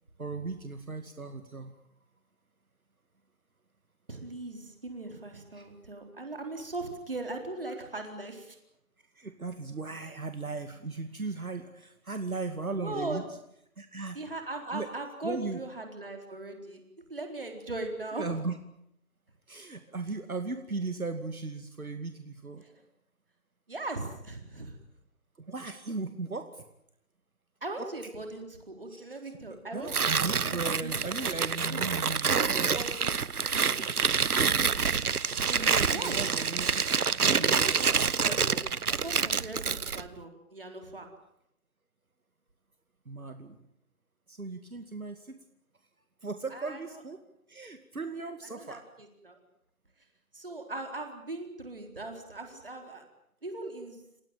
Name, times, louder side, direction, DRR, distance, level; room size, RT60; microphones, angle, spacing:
voice 1, 0.2-1.8 5.5-5.7 9.1-13.2 13.8-14.2 14.7-14.9 15.2-15.6 18.2-18.6 19.5-22.6 25.4-26.6 27.8-27.9 28.9-29.3 29.7-32.5 34.5-35.1 35.5-36.9 37.2-37.8 43.1-43.7 44.3-45.3 46.2-47.2 47.5-48.8, right 3 dB, 70° right, 8 dB, 2.4 m, -37 dB
voice 2, 4.1-8.6 12.8-13.2 14.1-16.8 17.1-18.3 22.6-22.7 23.7-24.7 27.6-31.0 31.7-32.0 32.4-33.8 35.9-36.2 37.4-38.6 38.9-41.1 46.5-46.8 48.5-49.4 50.3-53.0 53.4-54.0, right 2 dB, 40° right, 4 dB, 4.2 m, -39 dB
Tearing, 29.9-40.1, right 6 dB, 85° right, 1.0 m, -27 dB
29.0 x 17.0 x 9.2 m, 0.78 s
figure-of-eight pair, 180°, 44 cm